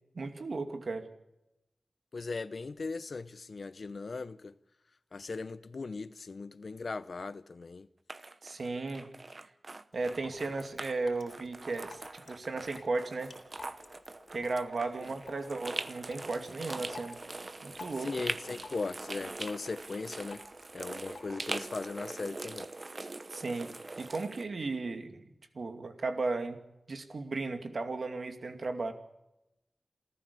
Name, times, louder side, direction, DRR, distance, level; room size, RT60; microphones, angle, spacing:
voice 1, 0.1-1.1 8.4-9.1 9.9-13.3 14.3-17.2 17.6-18.1 23.3-26.6 26.9-28.9, right 3 dB, 75° right, 2.5 m, -35 dB
voice 2, 2.1-4.5 5.1-7.9 18.0-20.4 20.7-22.7, left 4 dB, 65° left, 0.8 m, -38 dB
sound 1, 8.1-11.0 11.3-24.5, right 2 dB, 45° right, 1.0 m, -42 dB
Drip, 9.9-21.9, left 3 dB, 90° left, 3.8 m, -54 dB
27.5 x 14.5 x 7.0 m
wide cardioid pair, 80°, 0 cm